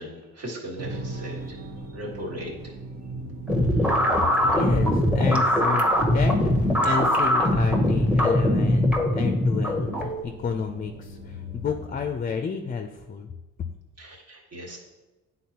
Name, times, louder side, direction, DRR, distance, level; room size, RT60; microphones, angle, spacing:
voice 1, 0.0-1.7 1.9-2.7 3.7-4.3 14.0-14.8, equal, 55° right, -2 dB, 1.7 m, -38 dB
sound 1, 0.8-12.1, right 1 dB, 80° right, 1.2 m, -40 dB
sound 2, 3.5-10.2, left 1 dB, 5° right, 0.8 m, -21 dB
voice 2, 4.2-13.3, left 6 dB, 30° left, 6 dB, 0.4 m, -31 dB
9.1 x 3.9 x 2.9 m, 1.1 s
cardioid pair, 90°, 30 cm